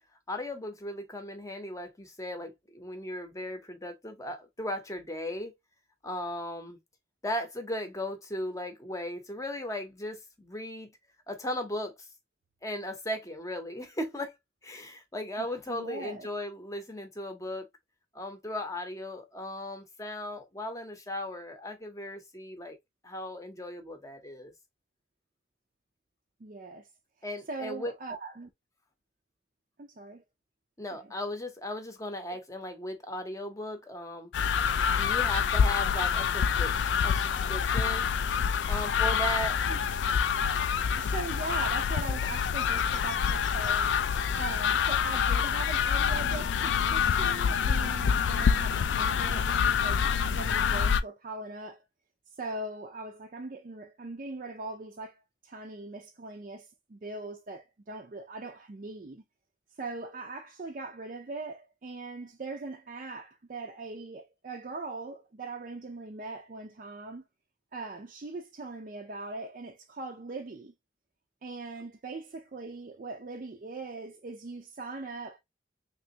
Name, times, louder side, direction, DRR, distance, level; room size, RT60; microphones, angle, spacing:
voice 1, 0.3-5.5 6.0-6.8 7.2-10.9 11.3-12.1 12.6-14.3 14.6-17.7 18.1-22.8 23.0-24.5 27.2-27.9 30.8-34.3 34.9-38.1 38.7-39.6, left 1 dB, 20° left, 0.7 m, -37 dB
voice 2, 15.4-16.3 26.4-26.9 27.5-28.5 29.8-30.2 39.7-39.8 41.0-44.0 44.4-51.8 52.4-59.2 59.8-67.2 67.7-70.7 71.4-75.4, right 3 dB, 45° right, 0.4 m, -40 dB
sound 1, 34.3-51.0, left 7 dB, 90° left, 0.4 m, -27 dB
3.3 x 3.0 x 2.7 m
head